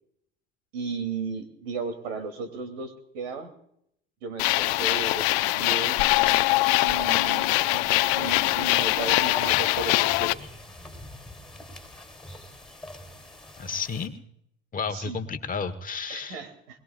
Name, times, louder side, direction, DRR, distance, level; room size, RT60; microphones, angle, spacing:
voice 1, 0.7-3.5 4.2-6.0 6.8-10.4 14.9-15.2 16.1-16.8, right 4 dB, 75° right, 8 dB, 3.1 m, -35 dB
sound 1, 4.4-10.3, left 20 dB, 65° left, 0.7 m, -23 dB
sound 2, 6.9-14.1, left 1 dB, ahead, 3.6 m, -44 dB
voice 2, 13.6-14.1 14.7-16.4, left 5 dB, 25° left, 8 dB, 1.4 m, -32 dB
21.5 x 21.5 x 2.5 m, 0.72 s
hypercardioid pair, 90°, 33 cm